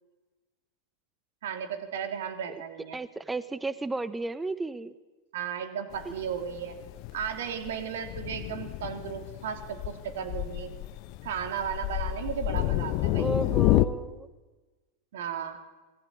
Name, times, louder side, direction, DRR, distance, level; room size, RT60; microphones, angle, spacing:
voice 1, 1.4-3.0 5.3-6.8 7.1-10.7 11.2-13.3 15.1-15.6, right 8 dB, 55° right, 7 dB, 3.3 m, -35 dB
voice 2, 2.9-4.9 6.0-6.1 13.2-14.3, right 2 dB, 10° right, 16 dB, 1.2 m, -33 dB
Thunder, 5.9-13.9, left 17 dB, 45° left, 1.0 m, -29 dB
26.5 x 20.0 x 8.7 m, 1.3 s
figure-of-eight pair, 90°, 0 cm